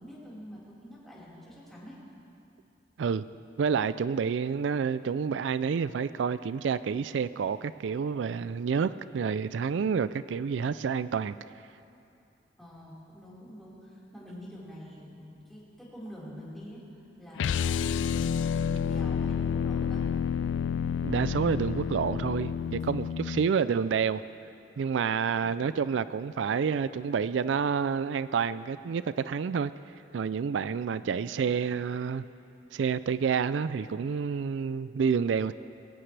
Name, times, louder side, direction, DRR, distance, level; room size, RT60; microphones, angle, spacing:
voice 1, 0.0-2.0 12.6-20.0, equal, ahead, -9 dB, 4.5 m, -46 dB
voice 2, 3.6-11.4 21.0-24.2 24.8-29.7 30.1-32.3 32.7-35.5, right 6 dB, 85° right, 15 dB, 0.4 m, -29 dB
sound 1, 17.4-23.5, left 7 dB, 85° left, 0.3 m, -29 dB
22.5 x 16.5 x 3.3 m, 2.7 s
head